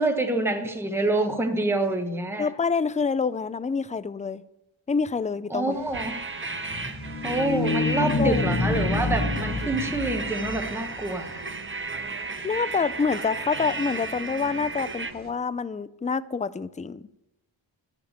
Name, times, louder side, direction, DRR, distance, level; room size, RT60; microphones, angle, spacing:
voice 1, 0.0-2.5 5.5-6.2 7.2-11.4, right 2 dB, 5° right, 1.1 m, -27 dB
voice 2, 2.4-4.4 4.9-5.8 8.0-8.5 12.4-17.1, left 5 dB, 15° left, 0.4 m, -27 dB
sound 1, 5.7-15.3, right 4 dB, 75° right, 2.1 m, -45 dB
sound 2, 5.9-15.1, right 3 dB, 25° right, 0.8 m, -34 dB
sound 3, 6.6-11.1, left 3 dB, 35° left, 1.1 m, -28 dB
13.0 x 7.0 x 8.7 m
wide cardioid pair, 125°, 47 cm